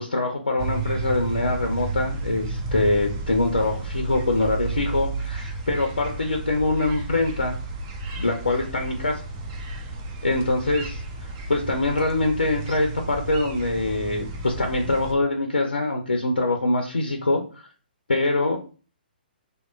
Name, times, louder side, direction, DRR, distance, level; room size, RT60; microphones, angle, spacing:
voice 1, 0.0-7.6 8.2-9.2 10.2-17.7 18.1-18.6, left 2 dB, 70° left, 3 dB, 0.4 m, -24 dB
sound 1, 0.6-15.1, right 3 dB, 30° right, 0.5 m, -32 dB
2.9 x 2.0 x 2.3 m, 0.38 s
figure-of-eight pair, 125°, 5 cm